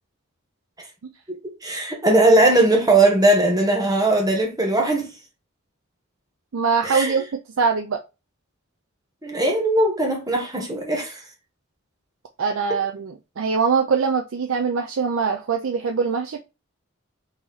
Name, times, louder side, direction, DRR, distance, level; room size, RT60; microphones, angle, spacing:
voice 1, 1.6-5.1 6.8-7.1 9.2-11.2, right 2 dB, 15° right, 0.9 m, -19 dB
voice 2, 6.5-7.3 7.6-8.0 12.4-16.4, right 5 dB, 70° right, 0.5 m, -22 dB
4.0 x 2.9 x 3.9 m
head